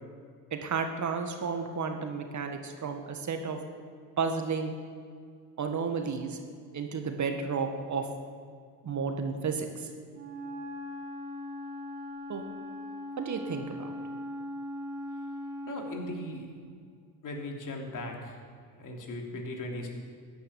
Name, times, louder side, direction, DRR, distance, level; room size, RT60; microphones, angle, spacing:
voice 1, 0.5-3.6 4.2-4.8 5.6-6.4 6.7-8.1 8.8-9.9 12.3-12.4 13.2-13.9, right 5 dB, 35° right, 6 dB, 1.7 m, -32 dB
Wind instrument woodwind instrument, 10.1-16.1, left 1 dB, 80° right, 2.3 m, -39 dB
voice 2, 15.7-16.5 17.2-18.4 18.8-19.9, left 1 dB, 40° left, 1 dB, 3.2 m, -38 dB
14.0 x 10.0 x 7.1 m, 2.1 s
hypercardioid pair, 70°, 47 cm